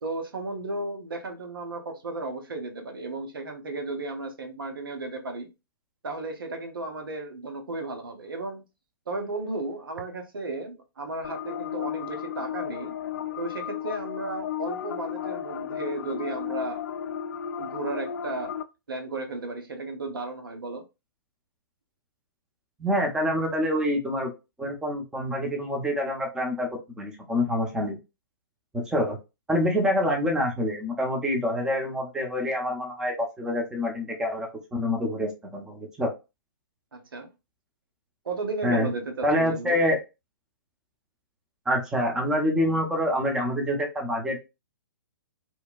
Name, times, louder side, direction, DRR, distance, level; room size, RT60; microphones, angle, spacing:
voice 1, 0.0-5.5 6.0-8.6 9.1-13.0 13.4-16.8 17.6-18.5 18.9-20.8 36.9-37.3 38.2-39.8, right 2 dB, 75° right, 0.8 m, -34 dB
sound 1, 11.2-18.6, left 9 dB, 65° left, 0.4 m, -34 dB
voice 2, 22.8-24.3 24.6-26.7 27.0-28.0 28.7-29.2 29.5-36.1 38.6-38.9 39.2-40.0 41.7-44.4, left 1 dB, 5° right, 0.7 m, -26 dB
2.9 x 2.2 x 2.3 m
figure-of-eight pair, 125°, 12 cm